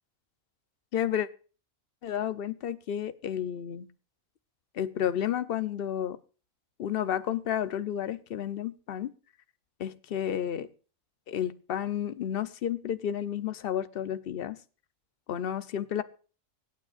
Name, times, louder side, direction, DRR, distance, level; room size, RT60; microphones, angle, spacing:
voice 1, 0.9-1.3 2.0-3.9 4.7-6.2 6.8-9.1 9.8-10.7 11.3-14.6 15.3-16.0, left 10 dB, 55° left, 14 dB, 0.8 m, -31 dB
24.5 x 8.9 x 2.5 m, 0.37 s
omnidirectional pair, 1.4 m